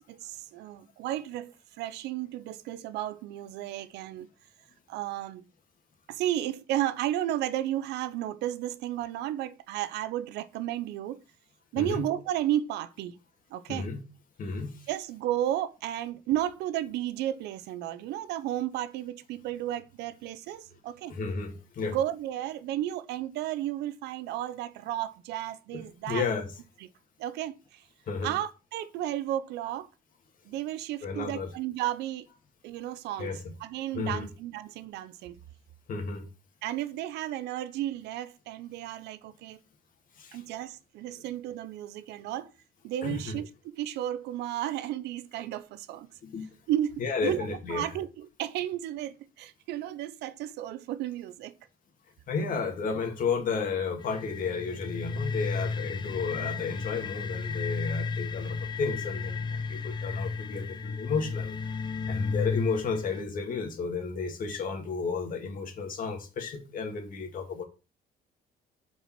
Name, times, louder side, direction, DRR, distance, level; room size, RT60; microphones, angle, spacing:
voice 1, 0.1-4.3 4.9-5.4 6.1-11.2 11.7-13.2 13.5-13.9 14.9-21.1 21.9-26.2 27.2-27.8 28.2-29.9 30.5-32.3 32.6-35.4 36.6-39.6 40.3-42.5 42.8-46.1 46.7-51.5, right 12 dB, 80° right, 0.6 m, -33 dB
voice 2, 14.4-14.8 21.1-22.0 25.7-26.5 28.1-28.3 31.0-31.5 33.2-33.4 33.9-34.3 35.9-36.2 40.2-40.4 43.0-43.3 46.2-46.5 47.0-47.8 52.3-61.7 62.1-67.6, left 5 dB, 55° left, 1.9 m, -32 dB
sound 1, 54.0-63.2, left 4 dB, 25° left, 0.7 m, -33 dB
5.4 x 4.7 x 5.9 m
cardioid pair, 110°, 17 cm